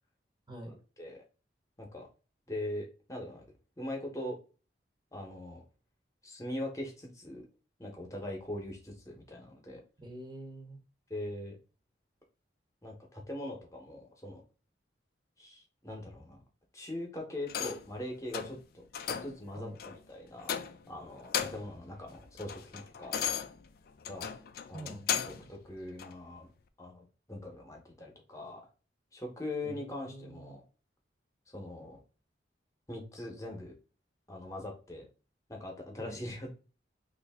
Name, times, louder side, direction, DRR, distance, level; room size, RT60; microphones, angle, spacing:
voice 1, 0.5-0.8 10.0-10.8 19.6-19.8 24.7-25.2 25.5-25.6 29.6-30.6 36.0-36.2, right 1 dB, 25° right, 3 dB, 0.8 m, -46 dB
voice 2, 2.5-3.4 3.8-4.4 5.1-5.6 6.2-7.4 7.8-9.8 11.1-11.6 12.8-14.4 15.4-16.4 16.7-20.5 20.9-23.1 24.1-24.3 24.7-25.0 25.5-26.5 26.8-28.6 29.1-30.6 31.5-32.0 32.9-33.7 34.3-35.1 35.5-36.5, left 1 dB, 15° left, 1 dB, 0.9 m, -41 dB
sound 1, 17.5-17.9 18.3-18.6 18.9-19.4 19.8-20.0 20.4-20.9 21.2-21.8 22.1-25.5 26.0-26.1, left 8 dB, 55° left, 0.3 m, -36 dB
3.2 x 2.6 x 3.4 m, 0.35 s
head